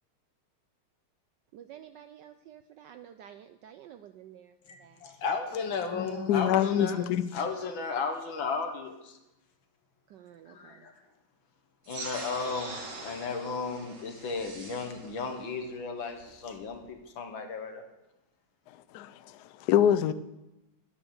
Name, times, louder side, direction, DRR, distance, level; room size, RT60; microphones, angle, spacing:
voice 1, 1.5-5.2 10.1-10.9, right 10 dB, 75° right, 1.0 m, -51 dB
voice 2, 4.7-7.0 7.3-9.2 10.5-10.9 11.9-17.8, left 4 dB, 65° left, 2.0 m, -34 dB
voice 3, 6.3-7.3 18.9-20.1, left 10 dB, 85° left, 0.9 m, -25 dB
sound 1, 11.8-16.9, right 3 dB, 40° right, 2.1 m, -43 dB
11.0 x 9.7 x 7.1 m
omnidirectional pair, 2.4 m